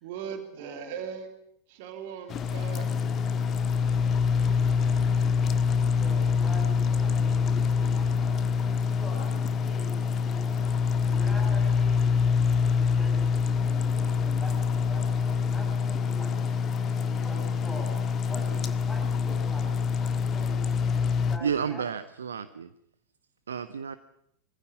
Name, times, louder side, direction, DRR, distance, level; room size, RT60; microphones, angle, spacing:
voice 1, 0.0-1.3 1.7-2.9, right 8 dB, 50° right, 6 dB, 2.8 m, -38 dB
voice 2, 0.5-1.0 6.0-8.4 8.9-16.4 17.1-18.0 18.2-20.7 21.3-21.9, left 1 dB, 5° left, 1 dB, 6.1 m, -44 dB
sound 1, 2.3-21.4, left 6 dB, 30° left, 1.6 m, -25 dB
voice 3, 21.4-22.7 23.5-24.0, right 7 dB, 70° right, 13 dB, 0.8 m, -31 dB
23.0 x 15.5 x 9.8 m, 0.76 s
figure-of-eight pair, 90°, 0 cm